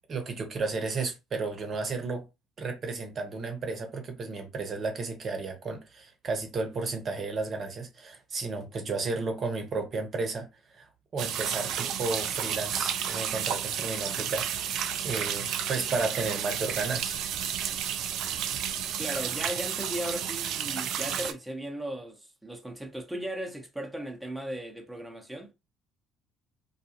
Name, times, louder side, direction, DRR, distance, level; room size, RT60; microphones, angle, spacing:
voice 1, 0.1-2.3 2.6-10.9 11.1-17.2, right 3 dB, 45° right, 0.9 m, -33 dB
sound 1, 11.2-21.3, right 9 dB, 60° right, 0.3 m, -32 dB
voice 2, 19.0-25.5, right 1 dB, 5° right, 0.9 m, -37 dB
2.4 x 2.3 x 2.9 m
hypercardioid pair, 55°, 0 cm